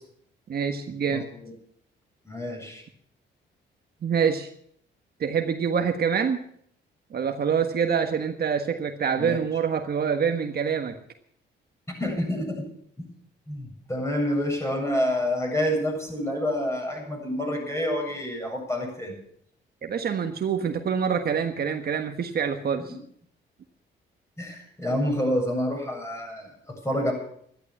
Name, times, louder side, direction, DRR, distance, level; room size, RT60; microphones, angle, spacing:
voice 1, 0.5-1.3 4.0-4.5 5.2-6.4 7.1-10.9 19.8-22.9, right 7 dB, 50° right, 5 dB, 1.5 m, -26 dB
voice 2, 1.1-1.5 2.3-2.8 9.2-9.4 12.0-12.6 13.0-13.1 13.5-19.1 24.4-27.1, left 1 dB, 15° left, 1 dB, 7.9 m, -28 dB
13.0 x 12.0 x 7.2 m, 0.66 s
cardioid pair, 90°, 20 cm